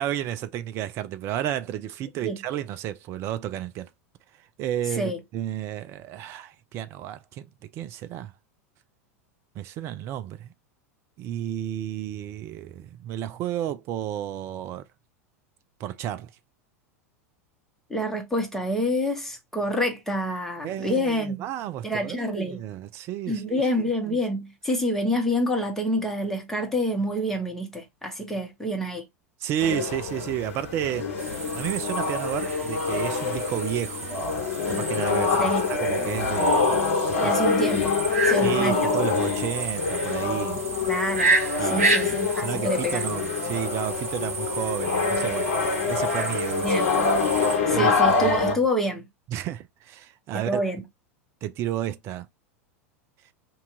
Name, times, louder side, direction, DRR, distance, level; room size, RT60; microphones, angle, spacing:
voice 1, 0.0-3.9 4.3-7.5 7.7-8.3 9.6-10.5 11.2-14.8 15.8-16.3 20.6-23.6 24.1-24.2 29.4-31.2 31.5-34.1 34.7-36.7 37.1-37.4 38.3-40.6 41.6-45.5 45.9-46.8 47.3-47.9 48.2-48.6 49.3-50.6 51.4-52.3, right 11 dB, 35° right, 0.3 m, -32 dB
voice 2, 17.9-21.4 21.8-22.6 23.3-29.0 35.4-35.7 37.2-38.0 38.2-38.9 40.9-41.3 41.6-43.0 46.6-46.9 47.7-49.0 50.3-50.8, equal, 5° left, 1.0 m, -27 dB
sound 1, 29.6-48.6, left 4 dB, 60° left, 0.9 m, -25 dB
sound 2, 31.2-47.6, right 3 dB, 65° right, 1.2 m, -31 dB
2.7 x 2.3 x 3.8 m
figure-of-eight pair, 85°, 8 cm